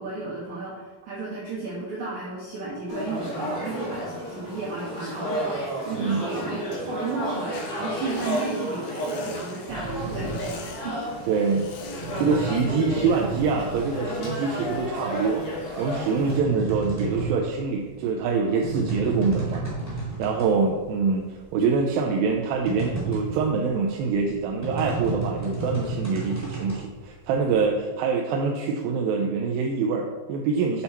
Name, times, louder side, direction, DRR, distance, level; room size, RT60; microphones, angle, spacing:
voice 1, 0.0-11.0, right 3 dB, 60° right, -6 dB, 2.4 m, -34 dB
sound 1, 2.9-16.4, equal, 50° left, 3.0 m, -32 dB
sound 2, 7.5-12.5, left 6 dB, 80° left, 2.7 m, -46 dB
sound 3, 9.7-14.4 14.7-20.6 20.9-21.0 21.3-27.7, right 3 dB, 5° right, 1.9 m, -32 dB
voice 2, 11.3-11.7 12.2-15.4 15.8-30.8, right 5 dB, 85° right, 1 dB, 2.5 m, -25 dB
8.7 x 5.5 x 4.3 m, 1.4 s
omnidirectional pair, 4.2 m